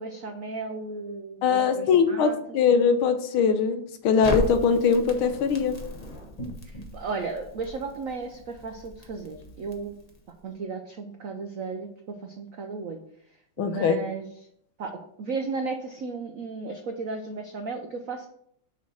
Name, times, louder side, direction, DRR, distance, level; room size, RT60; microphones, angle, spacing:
voice 1, 0.0-2.4 6.7-10.0 10.4-13.0 13.6-14.3 14.8-14.9 15.2-18.3, right 4 dB, 80° right, 4 dB, 0.7 m, -34 dB
voice 2, 1.4-5.8 13.6-14.0, left 6 dB, 85° left, 9 dB, 1.6 m, -22 dB
Crackle, 4.2-10.4, equal, 35° left, 0.6 m, -37 dB
6.3 x 4.1 x 6.2 m, 0.68 s
omnidirectional pair, 2.3 m